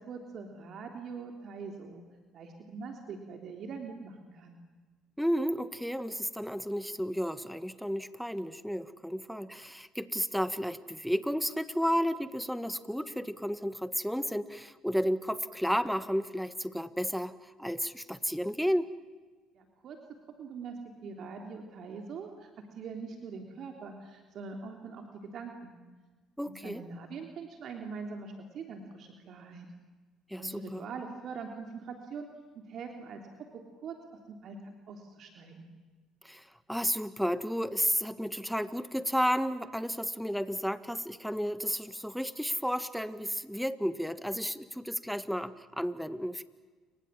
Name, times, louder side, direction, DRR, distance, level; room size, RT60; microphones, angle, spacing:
voice 1, 0.0-2.0 2.3-4.6 19.5-20.0 20.4-25.8 26.6-29.7 30.4-32.3 32.5-34.0 34.3-35.7, right 5 dB, 60° right, 3 dB, 3.3 m, -43 dB
voice 2, 5.2-18.9 26.4-26.8 30.3-30.9 36.2-46.4, equal, ahead, 12 dB, 1.8 m, -32 dB
30.0 x 25.0 x 7.5 m, 1.3 s
hypercardioid pair, 60°, 0 cm